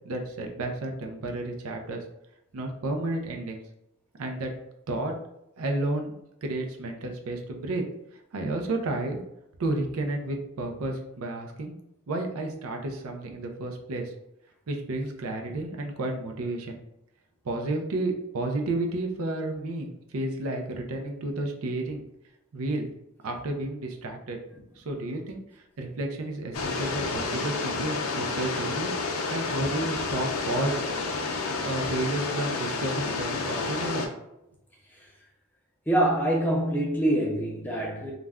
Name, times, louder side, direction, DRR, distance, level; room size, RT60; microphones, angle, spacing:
voice 1, 0.0-2.0 2.5-3.6 4.2-4.5 4.9-5.1 5.6-6.1 6.4-7.9 8.3-9.2 9.6-11.7 12.1-14.1 14.7-16.8 17.4-22.0 22.5-22.9 23.2-24.4 24.8-28.9 29.3-30.8 31.6-34.1, right 2 dB, 90° right, 3 dB, 0.5 m, -31 dB
sound 1, 26.5-34.1, left 3 dB, 80° left, 0.4 m, -30 dB
voice 2, 35.9-38.1, right 1 dB, 10° left, -2 dB, 0.4 m, -25 dB
2.4 x 2.1 x 3.4 m, 0.83 s
head